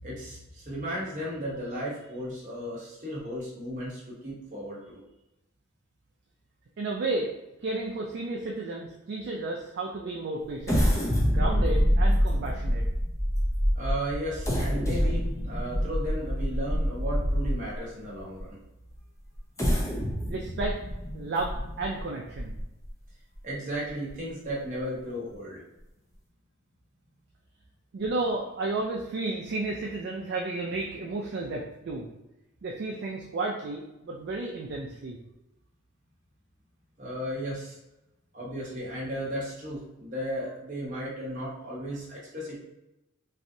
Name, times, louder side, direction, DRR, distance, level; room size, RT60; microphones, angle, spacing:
voice 1, 0.0-5.0 13.7-18.6 23.4-25.6 37.0-37.8 38.3-42.6, equal, 35° right, -5 dB, 0.9 m, -35 dB
voice 2, 6.8-7.3 7.6-10.8 11.3-12.9 20.3-20.8 21.1-22.6 27.9-32.1 32.6-35.2, right 2 dB, 50° right, -2 dB, 0.3 m, -32 dB
sound 1, 10.6-17.8 18.4-18.5 19.3-22.9 23.3-23.4 23.9-24.1, equal, 15° left, 0.4 m, -26 dB
3.1 x 2.6 x 2.6 m, 0.92 s
head